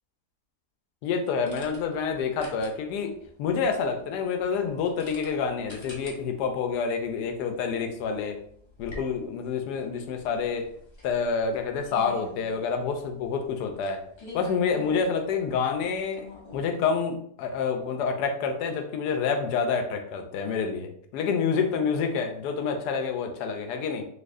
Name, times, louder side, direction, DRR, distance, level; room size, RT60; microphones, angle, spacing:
voice 1, 1.0-3.1 3.4-8.4 8.8-10.7 11.0-14.0 14.3-16.3 16.5-24.1, left 5 dB, 80° left, 5 dB, 1.2 m, -28 dB
sound 1, 1.4-16.6, left 2 dB, 30° left, 0.5 m, -48 dB
4.1 x 2.8 x 2.5 m, 0.65 s
omnidirectional pair, 1.7 m